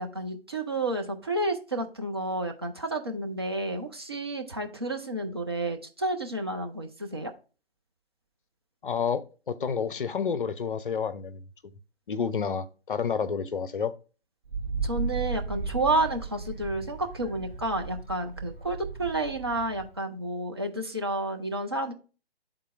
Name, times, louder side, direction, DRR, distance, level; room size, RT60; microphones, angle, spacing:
voice 1, 0.0-7.3 14.8-21.9, right 2 dB, 25° right, 0.4 m, -30 dB
voice 2, 8.8-11.4 12.1-13.9, left 6 dB, 55° left, 0.5 m, -29 dB
Wind, 14.5-20.0, right 4 dB, 45° right, 2.2 m, -35 dB
11.0 x 3.8 x 2.3 m
figure-of-eight pair, 140°, 32 cm